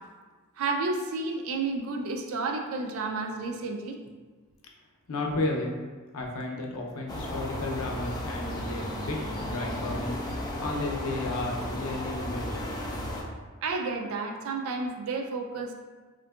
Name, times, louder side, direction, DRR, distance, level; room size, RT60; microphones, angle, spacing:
voice 1, 0.6-4.0 13.6-15.7, right 3 dB, 65° right, 4 dB, 0.3 m, -31 dB
voice 2, 5.1-5.7 6.1-12.7, left 2 dB, 75° left, 0 dB, 0.5 m, -33 dB
sound 1, 7.1-13.2, left 1 dB, 20° left, 0.3 m, -34 dB
3.5 x 2.5 x 2.3 m, 1.4 s
head